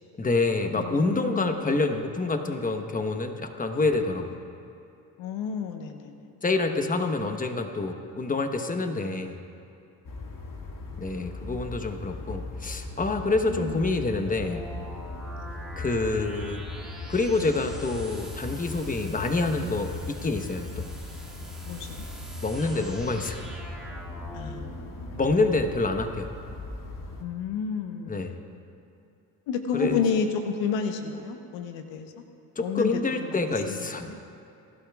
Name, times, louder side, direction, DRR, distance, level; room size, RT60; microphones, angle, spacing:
voice 1, 0.2-4.4 6.4-9.4 11.0-14.7 15.8-16.6 17.1-20.8 22.4-23.4 25.2-26.3 28.1-28.4 29.7-30.0 32.6-34.1, left 3 dB, 20° left, 6 dB, 1.1 m, -27 dB
voice 2, 0.7-1.5 5.2-6.1 13.2-13.8 21.6-22.0 24.3-25.0 27.2-28.3 29.5-32.1 32.6-32.9 33.7-34.2, left 6 dB, 80° left, 6 dB, 1.1 m, -31 dB
sound 1, 10.0-27.2, left 2 dB, 45° left, 2.0 m, -39 dB
sound 2, 13.5-25.3, right 1 dB, ahead, 2.3 m, -45 dB
20.5 x 12.0 x 2.4 m, 2.7 s
supercardioid pair, 60°, 44 cm